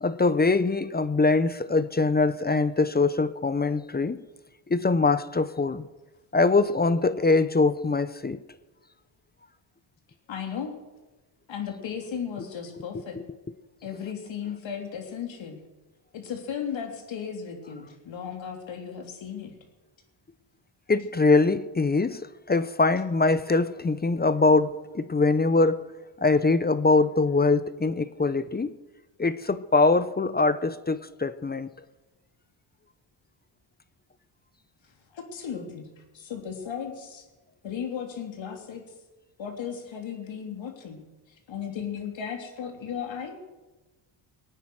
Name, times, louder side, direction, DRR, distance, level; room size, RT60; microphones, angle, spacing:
voice 1, 0.0-4.2 4.7-5.8 6.3-8.4 13.2-13.3 20.9-25.9 26.2-28.7 29.2-31.7, left 3 dB, 20° left, 0.7 m, -23 dB
voice 2, 10.3-10.7 11.5-13.2 13.8-15.6 16.1-19.5 35.1-35.9 36.1-37.2 37.6-38.8 39.4-41.0 41.5-43.4, left 7 dB, 65° left, 3.4 m, -35 dB
22.0 x 9.2 x 6.4 m
cardioid pair, 100°, 49 cm